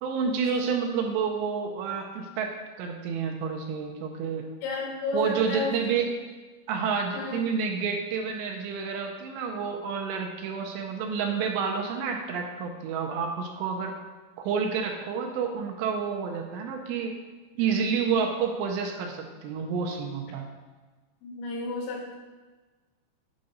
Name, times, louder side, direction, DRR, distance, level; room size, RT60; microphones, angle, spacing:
voice 1, 0.0-4.4 5.1-6.1 6.7-13.9 14.4-17.1 17.6-20.5, right 6 dB, 85° right, 2 dB, 2.7 m, -29 dB
voice 2, 4.6-5.8 7.1-7.4 19.6-19.7 21.2-22.2, left 2 dB, 85° left, -1 dB, 3.9 m, -32 dB
9.5 x 4.1 x 5.1 m, 1.3 s
omnidirectional pair, 5.2 m